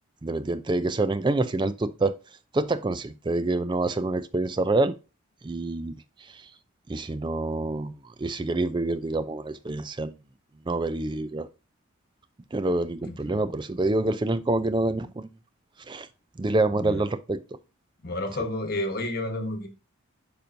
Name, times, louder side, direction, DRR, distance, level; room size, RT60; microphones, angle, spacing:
voice 1, 0.2-2.1 2.5-4.9 5.4-5.9 6.3-6.4 6.9-7.9 8.2-10.1 10.7-11.5 12.5-15.3 15.9-16.1 16.4-17.4, right 2 dB, 20° right, 0.4 m, -26 dB
voice 2, 13.0-13.4 16.8-17.0 18.0-19.7, left 1 dB, 45° left, 1.2 m, -31 dB
8.9 x 5.2 x 2.6 m
head